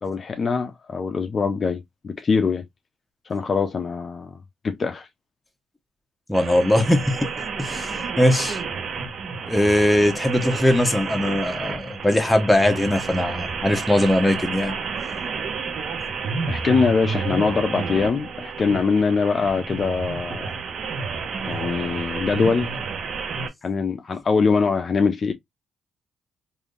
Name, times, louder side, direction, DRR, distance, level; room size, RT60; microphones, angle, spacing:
voice 1, 0.0-2.6 3.3-4.3 4.6-5.1 16.5-20.6 21.5-22.7 23.6-25.3, left 5 dB, 40° left, 0.5 m, -23 dB
voice 2, 6.3-7.3 7.6-8.6 9.5-14.8, left 1 dB, 10° left, 0.9 m, -20 dB
sound 1, 6.3-23.5, right 5 dB, 60° right, 0.8 m, -30 dB
3.4 x 2.6 x 2.4 m
cardioid pair, 90°, 0 cm